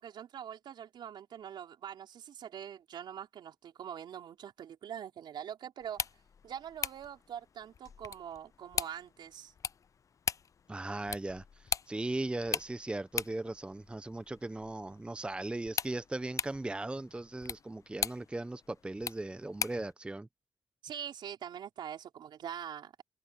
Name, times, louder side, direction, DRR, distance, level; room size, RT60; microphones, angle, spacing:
voice 1, 0.0-6.1 6.4-9.5 20.8-23.0, right 9 dB, 75° right, 4.9 m, -44 dB
sound 1, 5.8-19.9, left 6 dB, 45° left, 0.4 m, -41 dB
voice 2, 10.7-20.3, right 2 dB, 15° right, 0.7 m, -38 dB
cardioid pair, 80°, 8 cm